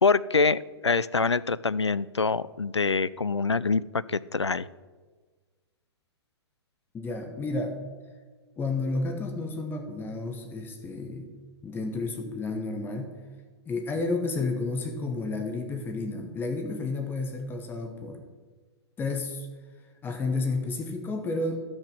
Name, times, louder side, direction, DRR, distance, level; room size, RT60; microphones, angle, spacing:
voice 1, 0.0-4.7, left 4 dB, 90° left, 18 dB, 0.4 m, -25 dB
voice 2, 6.9-7.8 8.6-11.3 11.6-13.2 13.7-18.2 19.0-19.5 20.0-21.6, left 3 dB, 15° left, 4 dB, 1.2 m, -31 dB
13.5 x 6.2 x 6.0 m, 1.4 s
figure-of-eight pair, 110°, 14 cm